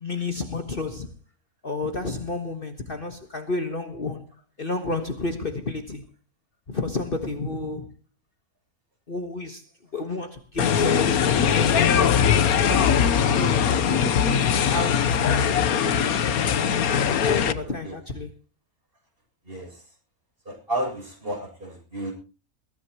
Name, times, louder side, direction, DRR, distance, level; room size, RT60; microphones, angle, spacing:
voice 1, 0.0-1.1 1.6-4.3 4.6-6.0 6.7-7.9 9.1-9.6 9.9-12.3 12.6-16.4 17.0-18.3, left 3 dB, 40° left, 1.6 m, -31 dB
sound 1, 10.6-17.5, left 7 dB, 80° left, 1.4 m, -21 dB
voice 2, 17.6-17.9 19.4-19.9 20.5-22.1, right 1 dB, 40° right, 7.7 m, -32 dB
22.5 x 16.0 x 3.0 m
omnidirectional pair, 1.5 m